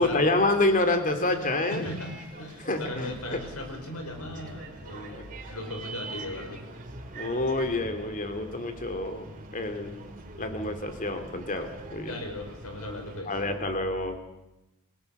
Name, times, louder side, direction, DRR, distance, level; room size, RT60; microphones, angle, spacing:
voice 1, 0.0-1.9 2.7-3.4 5.1-5.2 7.1-10.0 10.4-12.1 13.3-14.2, left 2 dB, 35° left, 6 dB, 2.8 m, -28 dB
Bus, 1.3-13.2, right 2 dB, 40° right, 2.9 m, -43 dB
voice 2, 1.7-6.6 12.1-13.3, left 1 dB, 80° left, 4 dB, 5.4 m, -38 dB
29.0 x 17.5 x 6.8 m, 0.94 s
head